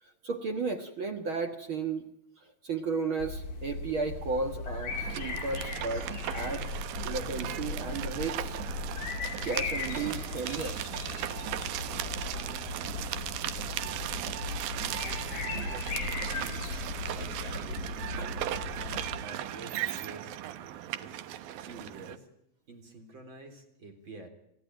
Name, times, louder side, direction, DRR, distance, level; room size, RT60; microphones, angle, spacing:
voice 1, 0.0-2.1 2.4-6.1 6.3-6.7 7.0-8.6 9.4-10.8 18.2-18.3 21.5-21.7, right 4 dB, 50° right, 6 dB, 1.6 m, -34 dB
sound 1, 3.2-19.2, left 4 dB, 60° left, 4.2 m, -38 dB
sound 2, 4.9-22.2, right 12 dB, 85° right, 2.9 m, -37 dB
voice 2, 11.8-13.2 14.7-15.9 16.3-16.7 17.1-20.4 21.0-21.2 21.6-22.3 22.7-24.3, right 2 dB, 35° right, 5 dB, 4.1 m, -49 dB
28.0 x 15.0 x 9.2 m, 0.80 s
omnidirectional pair, 4.0 m